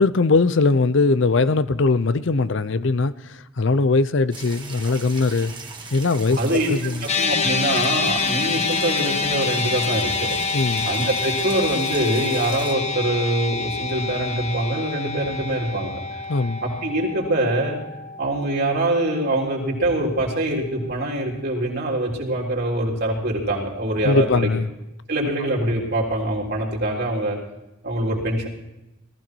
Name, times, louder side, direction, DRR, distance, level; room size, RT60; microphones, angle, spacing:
voice 1, 0.0-5.5 5.9-7.0 10.5-10.9 16.3-16.6 24.0-24.7, left 3 dB, 60° left, 14 dB, 0.6 m, -20 dB
sound 1, 4.3-12.7, right 4 dB, 20° right, 1.7 m, -39 dB
voice 2, 6.4-6.7 7.0-10.3 10.8-16.0 16.6-17.8 18.2-24.5 25.1-27.4 27.8-28.5, right 1 dB, 50° right, -2 dB, 3.6 m, -24 dB
sound 2, 7.1-19.5, left 4 dB, 30° left, 1.1 m, -27 dB
18.5 x 15.0 x 4.6 m, 0.95 s
head